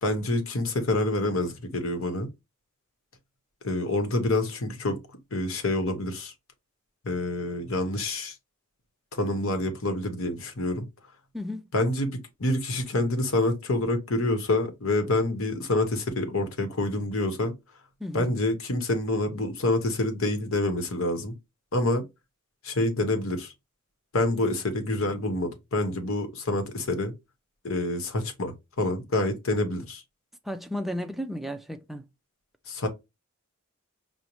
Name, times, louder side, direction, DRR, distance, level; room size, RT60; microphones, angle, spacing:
voice 1, 0.0-2.3 3.6-5.0 5.3-6.3 7.0-8.3 9.1-10.9 11.7-17.5 18.1-21.3 21.7-22.0 22.6-23.5 24.1-27.1 27.6-30.0 32.7-32.9, left 2 dB, 70° left, 0.9 m, -27 dB
voice 2, 30.4-32.0, left 1 dB, ahead, 0.4 m, -33 dB
5.1 x 2.1 x 2.9 m
head